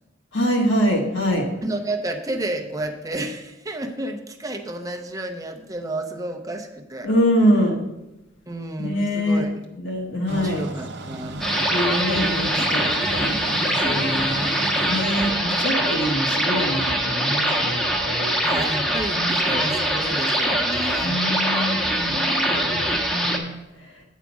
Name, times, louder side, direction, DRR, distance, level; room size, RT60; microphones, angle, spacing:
voice 1, 0.3-1.5 7.0-7.8 8.8-9.4 9.8-10.6 11.7-14.4 14.9-18.3 19.1-19.7 21.0-23.6, equal, 70° left, -1 dB, 1.5 m, -24 dB
voice 2, 1.6-7.1 8.5-9.5 10.3-11.9 12.9-13.4 14.2-14.6 18.4-21.2 21.8-22.9, right 1 dB, 20° right, 5 dB, 0.8 m, -32 dB
sound 1, 10.3-15.3, right 2 dB, 60° right, 0.7 m, -34 dB
sound 2, 11.4-23.4, right 1 dB, ahead, 1.1 m, -23 dB
8.3 x 4.9 x 6.1 m, 0.94 s
head